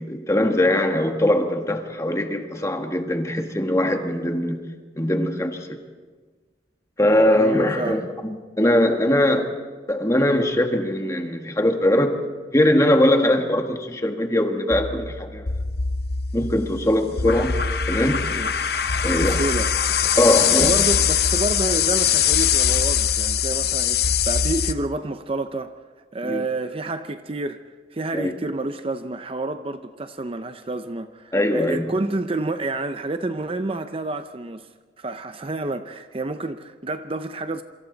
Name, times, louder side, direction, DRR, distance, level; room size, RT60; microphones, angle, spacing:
voice 1, 0.0-4.6 5.0-5.8 7.0-9.5 9.9-12.2 12.5-15.5 16.3-17.6 17.9-18.3 19.0-19.4 20.2-20.7 26.2-26.4 28.1-28.3 31.3-31.9, left 1 dB, 15° left, 1.6 m, -21 dB
voice 2, 7.3-8.1 18.3-20.1 20.6-25.8 26.1-27.6 27.9-34.7 35.0-37.6, right 2 dB, 30° right, 0.6 m, -29 dB
sound 1, 14.7-24.7, left 8 dB, 60° left, 0.8 m, -22 dB
27.5 x 24.5 x 4.0 m
head